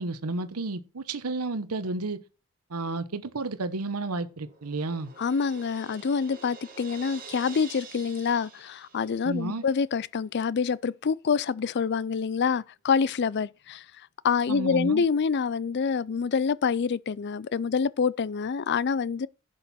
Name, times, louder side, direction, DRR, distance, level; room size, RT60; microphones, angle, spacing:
voice 1, 0.0-2.2 2.7-5.1 9.2-9.6 14.5-15.0, right 3 dB, 90° right, 0.9 m, -31 dB
Crash cymbal, 3.9-9.6, right 5 dB, 40° right, 2.1 m, -47 dB
voice 2, 5.2-13.9 14.2-19.3, left 5 dB, 50° left, 0.4 m, -26 dB
11.5 x 6.4 x 4.2 m
head